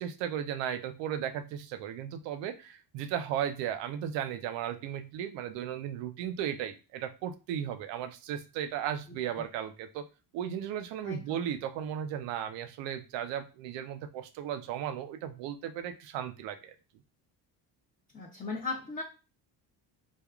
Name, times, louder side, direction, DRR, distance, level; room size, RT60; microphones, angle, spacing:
voice 1, 0.0-10.0 10.3-16.7, right 9 dB, 90° right, 10 dB, 0.5 m, -35 dB
voice 2, 9.1-9.4 11.0-11.2 18.1-19.0, left 3 dB, 20° left, -2 dB, 0.5 m, -37 dB
3.4 x 2.3 x 2.3 m, 0.31 s
cardioid pair, 110°, 42 cm